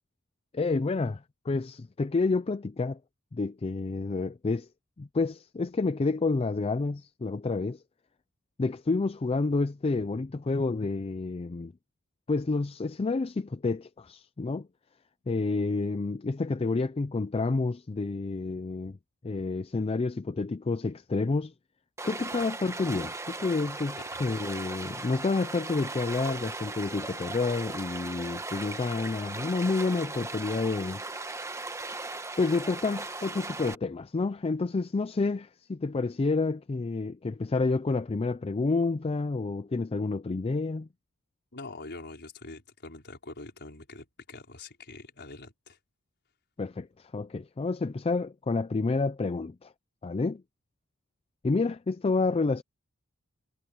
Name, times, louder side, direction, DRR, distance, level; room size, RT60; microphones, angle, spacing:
voice 1, 0.5-3.0 3.3-4.7 5.0-7.8 8.6-11.7 12.3-14.7 15.3-19.0 19.2-21.5 22.0-31.0 32.4-40.9 46.6-49.7 50.0-50.4 51.4-52.6, left 3 dB, 25° left, 0.4 m, -29 dB
Stream, 22.0-33.8, right 2 dB, 15° right, 1.3 m, -38 dB
voice 2, 41.5-45.8, left 2 dB, 50° left, 5.3 m, -44 dB
head